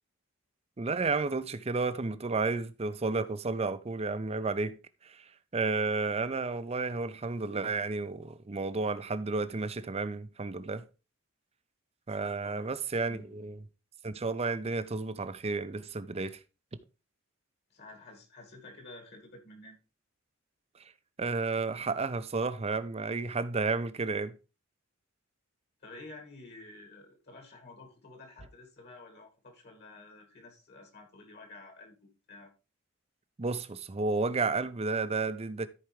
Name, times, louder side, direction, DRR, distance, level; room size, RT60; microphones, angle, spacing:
voice 1, 0.8-4.8 5.0-10.8 12.1-13.6 14.0-16.4 20.8-20.9 21.2-24.3 33.4-35.7, right 3 dB, 30° right, 0.6 m, -32 dB
voice 2, 17.7-19.8 25.8-32.5, left 2 dB, 55° left, 2.0 m, -51 dB
14.0 x 4.8 x 3.2 m
head